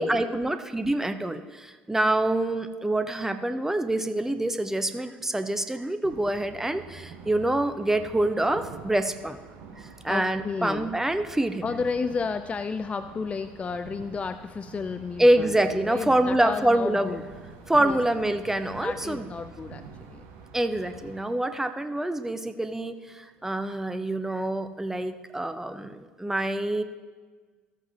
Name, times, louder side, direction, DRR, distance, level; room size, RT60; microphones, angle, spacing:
voice 1, 0.0-9.4 10.0-11.8 15.2-17.2 17.7-19.3 20.5-26.8, right 1 dB, 5° right, 9 dB, 0.7 m, -26 dB
elevated highway cars, 6.0-21.2, right 6 dB, 60° right, 1.1 m, -46 dB
voice 2, 10.1-11.0 11.6-17.2 17.8-18.0 18.8-20.3, left 5 dB, 25° left, 11 dB, 0.3 m, -32 dB
14.0 x 8.1 x 2.8 m, 1.4 s
figure-of-eight pair, 60°, 5 cm